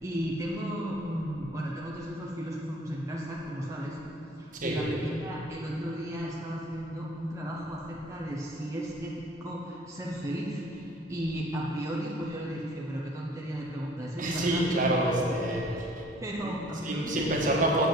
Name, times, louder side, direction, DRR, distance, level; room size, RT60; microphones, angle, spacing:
voice 1, 0.0-4.0 4.4-10.8 11.1-14.8 15.7-15.8 16.2-17.5, equal, 20° right, -4 dB, 0.8 m, -35 dB
voice 2, 14.2-16.0 16.4-16.6 16.8-17.9, right 1 dB, 50° right, -2 dB, 1.5 m, -27 dB
7.7 x 7.3 x 7.5 m, 3.0 s
head